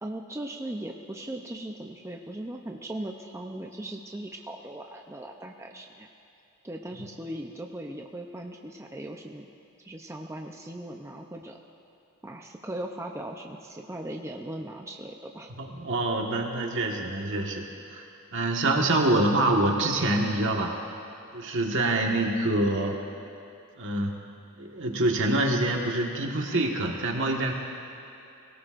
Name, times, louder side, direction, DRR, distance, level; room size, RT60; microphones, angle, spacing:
voice 1, 0.0-6.1 6.6-9.5 9.8-11.6 12.2-15.5, right 1 dB, 15° right, 1 dB, 0.6 m, -38 dB
voice 2, 15.6-17.6 17.9-18.0 18.3-20.7 21.3-23.0 23.8-24.2 24.6-27.5, right 2 dB, 60° right, 1 dB, 1.6 m, -25 dB
24.0 x 17.5 x 2.6 m, 2.8 s
head